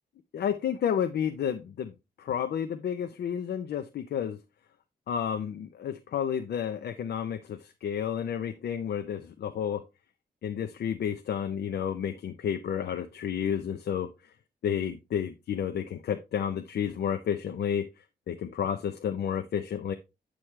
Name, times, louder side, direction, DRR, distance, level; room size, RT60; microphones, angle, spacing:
voice 1, 0.3-1.9 2.2-4.4 5.1-9.8 10.4-14.1 14.6-17.8 18.3-19.9, left 8 dB, 80° left, 7 dB, 0.7 m, -31 dB
8.7 x 6.3 x 3.2 m, 0.25 s
wide cardioid pair, 170°, 17 cm